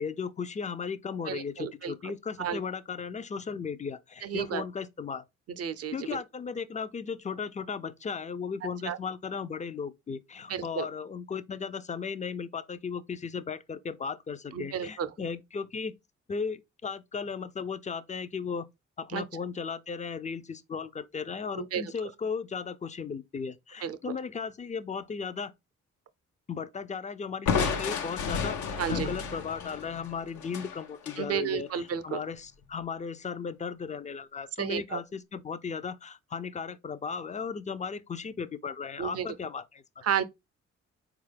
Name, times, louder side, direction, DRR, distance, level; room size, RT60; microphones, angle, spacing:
voice 1, 0.0-5.2 5.9-16.0 16.3-18.7 19.0-25.5 26.5-40.0, left 5 dB, 25° left, 0.4 m, -36 dB
voice 2, 1.3-1.9 2.4-2.6 4.2-4.6 5.6-6.2 8.9-9.0 10.5-10.8 14.5-15.1 19.1-19.2 21.6-21.8 23.8-24.0 28.8-29.1 31.2-32.2 34.6-35.0 39.0-39.3 40.0-40.2, right 8 dB, 55° right, 0.5 m, -32 dB
Crushing, 27.5-31.2, left 6 dB, 70° left, 0.6 m, -31 dB
4.0 x 2.4 x 3.2 m
supercardioid pair, 60°, 30 cm